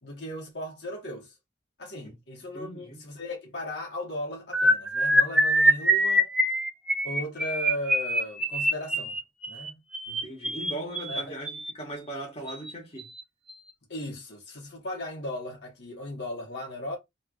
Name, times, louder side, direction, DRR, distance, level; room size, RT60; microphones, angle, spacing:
voice 1, 0.0-1.3 1.8-6.3 7.0-9.2 9.5-9.8 11.1-11.4 13.9-17.0, left 1 dB, 65° left, 1.4 m, -37 dB
voice 2, 2.5-3.0 10.1-11.5 11.8-13.1, right 1 dB, 30° left, 1.5 m, -38 dB
sound 1, 4.5-11.7 12.5-12.7 13.0-13.2 13.5-13.7, equal, 5° right, 0.5 m, -25 dB
3.3 x 3.1 x 2.4 m
head